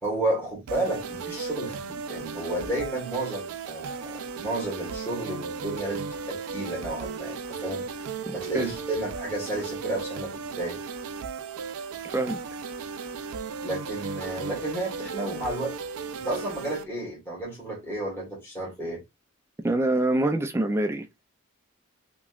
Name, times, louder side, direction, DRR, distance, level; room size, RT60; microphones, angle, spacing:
voice 1, 0.0-7.9 8.3-10.8 13.6-15.8 16.2-19.0, right 1 dB, 10° left, 1.3 m, -32 dB
sound 1, 0.7-16.8, right 5 dB, 80° right, 0.4 m, -36 dB
voice 2, 8.3-8.7 12.0-12.4 19.6-21.1, right 2 dB, 10° right, 0.4 m, -25 dB
3.0 x 2.9 x 2.3 m
head